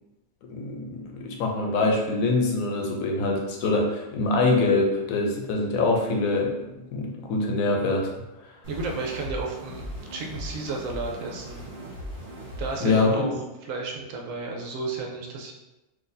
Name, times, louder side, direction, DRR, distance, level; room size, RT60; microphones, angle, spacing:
voice 1, 0.5-8.1 12.8-13.3, left 3 dB, 85° left, 1 dB, 1.1 m, -24 dB
sound 1, 8.6-13.0, equal, 55° right, 1.5 m, -38 dB
voice 2, 8.7-11.6 12.6-15.5, right 3 dB, 75° right, 1 dB, 1.0 m, -33 dB
3.9 x 2.7 x 2.6 m, 1.0 s
omnidirectional pair, 1.4 m